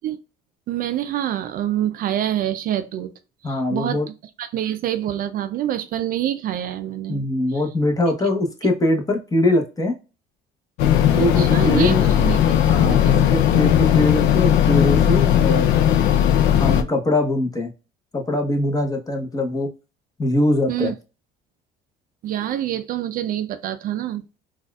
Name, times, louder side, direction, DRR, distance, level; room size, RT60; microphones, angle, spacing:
voice 1, 0.7-3.1 3.4-7.6 11.2-12.4 12.8-13.3 20.7-20.9 22.2-24.4, right 11 dB, 55° right, 0.4 m, -26 dB
voice 2, 3.4-4.1 7.1-9.9 11.1-12.1 12.7-15.7 16.6-17.7 18.1-19.7 20.2-20.9, left 1 dB, 20° left, 1.0 m, -22 dB
sound 1, 10.8-16.8, left 10 dB, 80° left, 0.4 m, -17 dB
4.0 x 2.4 x 2.3 m
supercardioid pair, 90°, 18 cm